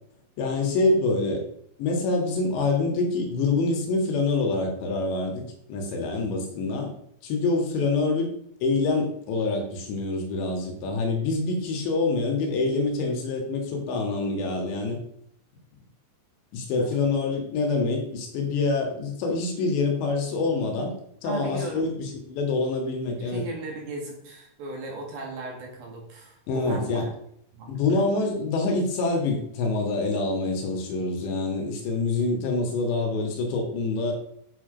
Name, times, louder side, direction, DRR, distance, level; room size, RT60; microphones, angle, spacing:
voice 1, 0.4-1.4 1.8-6.9 7.2-8.3 8.6-15.0 16.5-20.9 21.2-23.4 26.5-27.1 27.7-34.1, left 3 dB, 70° left, 2 dB, 3.9 m, -26 dB
voice 2, 21.2-21.9 23.2-27.1 27.5-28.0, right 2 dB, 60° right, 0 dB, 3.3 m, -37 dB
9.2 x 7.4 x 5.1 m, 0.73 s
omnidirectional pair, 5.5 m